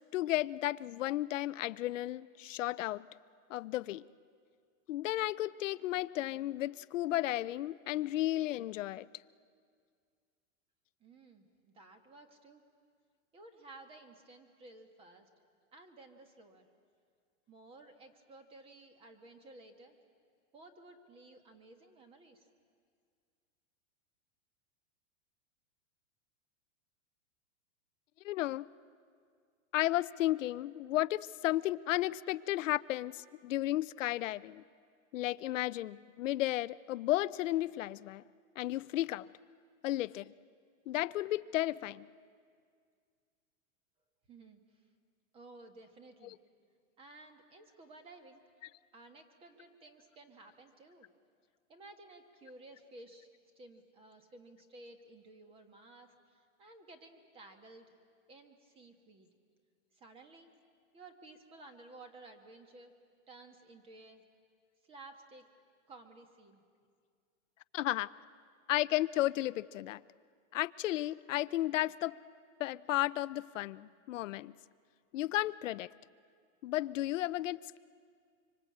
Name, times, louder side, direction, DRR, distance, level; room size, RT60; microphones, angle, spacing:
voice 1, 0.1-3.1 3.5-4.1 4.9-9.1 28.2-28.7 29.7-34.6 35.1-38.2 38.6-39.3 39.8-40.3 40.9-42.1 46.2-46.3 67.7-68.1 68.7-70.0 70.5-72.2 72.6-74.5 75.1-75.9 76.6-77.8, left 15 dB, 75° left, 16 dB, 0.6 m, -33 dB
voice 2, 11.0-12.6 13.3-15.3 15.7-16.7 17.5-20.0 20.5-22.5 44.3-44.8 45.3-46.4 47.0-48.4 48.9-51.1 51.7-53.3 53.5-57.9 58.3-59.3 59.9-60.5 60.9-62.9 63.3-64.2 64.8-65.5 65.9-66.6, right 2 dB, 15° right, 7 dB, 1.4 m, -55 dB
25.5 x 24.5 x 8.6 m, 2.1 s
supercardioid pair, 175°, 38 cm